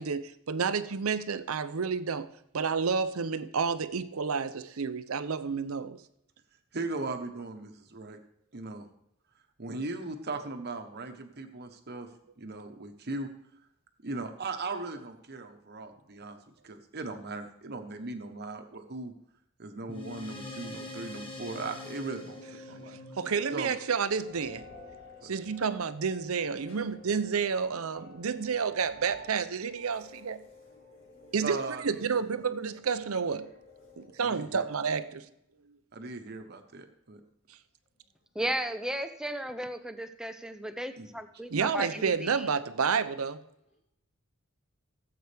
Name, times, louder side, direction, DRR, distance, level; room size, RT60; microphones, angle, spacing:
voice 1, 0.0-2.3 2.5-6.0 23.2-24.7 25.2-30.4 31.3-33.5 34.0-35.3 41.5-43.4, right 5 dB, 80° right, 0.7 m, -30 dB
voice 2, 6.7-8.2 8.5-8.9 9.6-12.1 12.4-13.3 14.0-19.1 19.6-23.0 23.5-23.7 25.2-25.3 31.4-32.2 34.2-34.6 35.9-37.2 41.0-41.1, right 3 dB, 50° right, 1.2 m, -38 dB
sound 1, 19.9-24.7, left 2 dB, 25° left, 1.6 m, -44 dB
sound 2, 23.7-35.0, left 2 dB, 45° left, 1.9 m, -53 dB
voice 3, 26.7-27.0 29.1-29.2 29.9-30.1 30.4-31.8 33.8-33.9 36.2-36.4 37.9-38.1 40.6-41.5 43.7-43.8, left 2 dB, 70° left, 5.3 m, -65 dB
voice 4, 38.4-42.5, right 1 dB, 5° right, 0.6 m, -35 dB
17.0 x 7.9 x 3.4 m
head